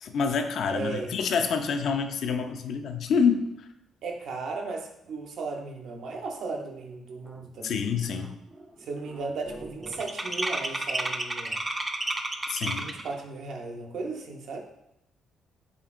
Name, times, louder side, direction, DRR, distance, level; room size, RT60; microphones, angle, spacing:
voice 1, 0.0-3.4 7.6-8.3 12.5-12.9, left 6 dB, 70° left, 6 dB, 0.3 m, -27 dB
voice 2, 0.7-1.2 4.0-7.8 8.8-11.6 12.8-14.6, right 3 dB, 70° right, 2 dB, 0.5 m, -36 dB
sound 1, 7.5-7.6 7.9-8.3 8.5-13.1, right 2 dB, 20° right, 0.3 m, -32 dB
5.0 x 2.4 x 2.4 m, 0.84 s
cardioid pair, 90°, 0 cm